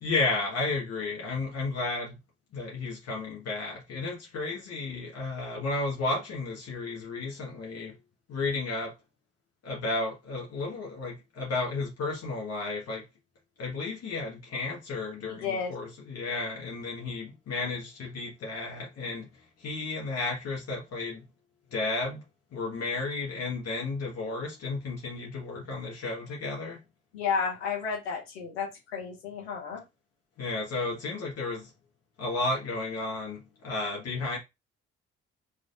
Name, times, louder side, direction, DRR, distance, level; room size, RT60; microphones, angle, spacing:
voice 1, 0.0-2.2 2.5-7.9 8.3-8.9 9.6-13.0 13.6-19.3 19.6-21.2 21.7-22.2 22.5-26.8 30.4-31.7 32.2-34.4, left 3 dB, 55° left, 1.4 m, -33 dB
voice 2, 15.3-15.7 27.1-29.8, left 6 dB, 90° left, 1.4 m, -32 dB
4.5 x 3.3 x 2.5 m
hypercardioid pair, 50°, 30 cm